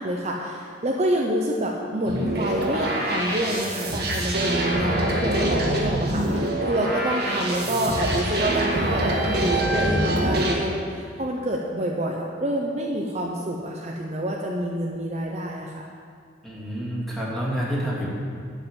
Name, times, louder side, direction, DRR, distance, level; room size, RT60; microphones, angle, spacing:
voice 1, 0.0-15.9, right 1 dB, 35° right, -1 dB, 0.8 m, -27 dB
sound 1, 2.1-10.5, right 1 dB, 60° right, 1.9 m, -25 dB
voice 2, 16.4-18.1, equal, ahead, -7 dB, 2.7 m, -28 dB
11.5 x 5.7 x 9.0 m, 2.2 s
head